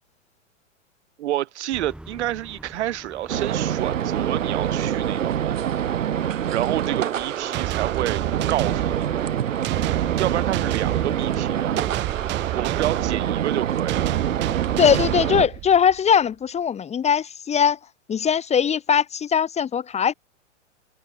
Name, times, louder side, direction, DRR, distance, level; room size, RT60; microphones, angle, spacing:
voice 1, 1.2-5.7 6.5-8.2 8.5-8.9 10.2-11.8 12.5-14.2, right 13 dB, 60° right, 2.6 m, -29 dB
sound 1, 1.7-13.6, right 1 dB, 5° right, 5.4 m, -46 dB
sound 2, 3.3-15.5, right 10 dB, 85° right, 0.8 m, -25 dB
sound 3, 7.5-16.0, right 19 dB, 30° right, 1.0 m, -30 dB
voice 2, 14.8-17.8 18.1-20.1, left 7 dB, 15° left, 1.7 m, -20 dB
hypercardioid pair, 115°, 38 cm